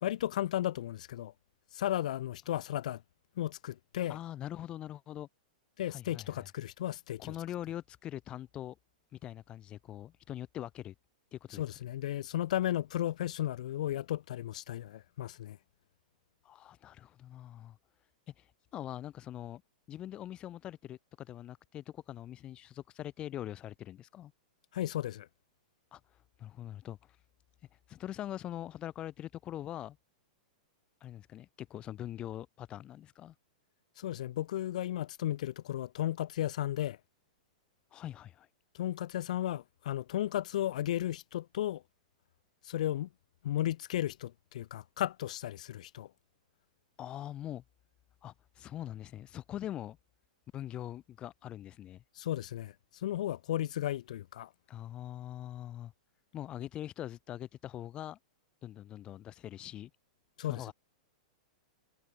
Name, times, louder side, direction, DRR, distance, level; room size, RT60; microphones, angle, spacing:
voice 1, 0.0-1.3 1.7-3.0 3.4-4.2 5.8-7.4 11.5-15.6 24.7-25.3 34.0-37.0 38.7-41.8 42.6-43.1 43.4-46.1 52.1-54.5 60.4-60.7, left 12 dB, 65° left, 2.4 m, -34 dB
voice 2, 4.1-5.3 5.9-6.5 7.2-8.8 9.1-10.9 11.3-11.6 16.4-17.8 18.4-18.5 18.7-19.6 19.9-24.3 25.9-26.0 26.4-27.0 27.9-30.0 31.0-33.3 37.9-38.5 47.0-47.6 48.2-50.0 50.5-52.0 54.7-55.9 56.3-58.2 58.6-59.9 60.5-60.7, left 12 dB, 25° left, 4.0 m, -43 dB
hypercardioid pair, 150°, 4 cm